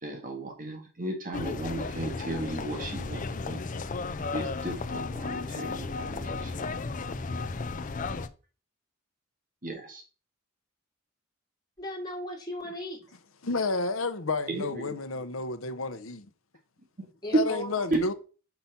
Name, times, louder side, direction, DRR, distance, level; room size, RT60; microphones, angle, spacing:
voice 1, 0.0-3.6 4.3-6.6 9.6-10.0 14.5-15.0 17.9-18.1, right 2 dB, 40° right, 1.6 m, -35 dB
sound 1, 1.3-8.3, left 3 dB, 40° left, 0.5 m, -34 dB
voice 2, 11.8-13.2 17.2-17.8, equal, 20° left, 3.2 m, -37 dB
voice 3, 13.4-16.3 17.3-18.1, left 3 dB, 70° left, 0.9 m, -30 dB
5.9 x 5.3 x 5.8 m
head